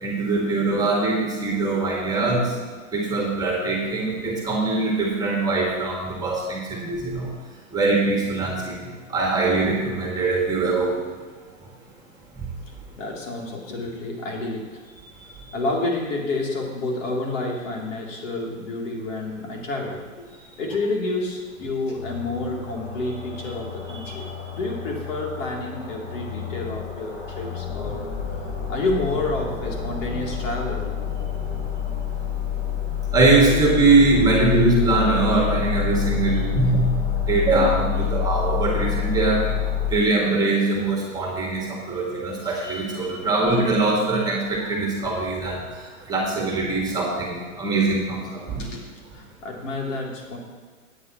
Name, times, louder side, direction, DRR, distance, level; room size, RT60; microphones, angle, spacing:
voice 1, 0.0-2.5 2.9-7.3 7.7-11.1 12.4-12.5 23.9-24.2 33.1-37.0 37.3-39.5 39.9-45.8 46.1-48.7, right 3 dB, 10° right, -2 dB, 1.9 m, -22 dB
voice 2, 13.0-20.3 20.6-28.1 28.7-30.9 33.5-33.6 38.0-38.1 39.8-39.9 43.1-43.3 48.6-50.4, left 2 dB, 65° left, -1 dB, 3.2 m, -29 dB
sound 1, 22.0-39.9, left 8 dB, 30° left, 2.8 m, -28 dB
17.5 x 8.9 x 3.0 m, 1.5 s
hypercardioid pair, 140°, 42 cm